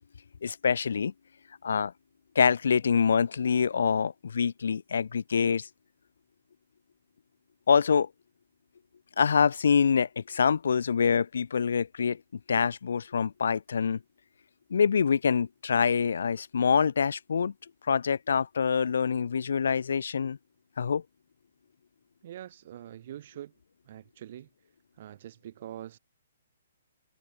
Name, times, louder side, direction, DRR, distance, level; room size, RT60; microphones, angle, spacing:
voice 1, 0.4-1.1 1.6-1.9 2.3-5.7 7.7-8.1 9.2-12.2 12.5-14.0 14.7-17.5 17.9-20.4 20.8-21.0, left 6 dB, 80° left, 0.8 m, -25 dB
voice 2, 22.2-23.5 23.9-24.5 25.0-26.0, right 11 dB, 45° right, 1.0 m, -44 dB
hypercardioid pair, 165°, 0 cm